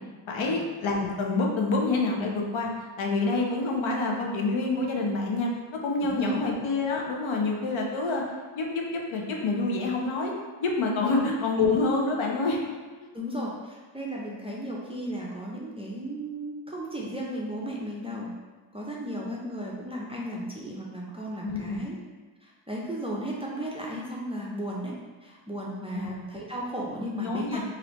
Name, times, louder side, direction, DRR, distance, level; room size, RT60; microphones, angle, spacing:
voice 1, 0.3-2.7 3.0-5.5 5.8-8.2 8.6-10.3 10.6-12.6 13.0-13.1 21.4-21.9 25.8-26.1 27.2-27.6, left 3 dB, 70° left, 0 dB, 0.7 m, -27 dB
voice 2, 6.0-6.3 11.0-11.2 13.1-18.3 18.7-22.0 22.4-24.9 25.2-27.6, equal, 15° right, -4 dB, 0.4 m, -35 dB
3.2 x 2.6 x 3.0 m, 1.3 s
cardioid pair, 80°, 49 cm